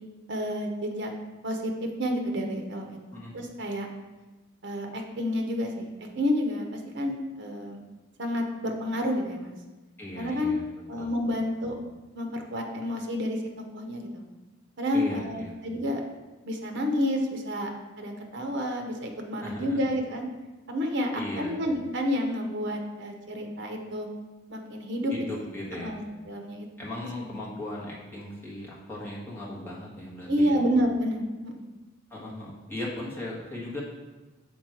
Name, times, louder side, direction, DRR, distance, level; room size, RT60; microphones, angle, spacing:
voice 1, 0.3-1.1 1.4-3.9 4.6-7.8 8.2-9.6 10.2-10.6 10.9-11.7 12.1-13.4 13.7-14.3 14.8-16.0 16.5-17.7 18.0-20.3 20.7-24.1 24.5-25.4 25.8-26.7 27.3-27.4 30.3-31.7, equal, 60° right, 3 dB, 0.9 m, -29 dB
voice 2, 10.0-10.6 11.0-11.1 14.9-15.5 19.4-19.8 21.1-21.5 25.1-26.0 26.8-30.6 32.1-33.8, left 1 dB, 10° left, -6 dB, 1.5 m, -37 dB
6.4 x 4.2 x 4.4 m, 1.2 s
head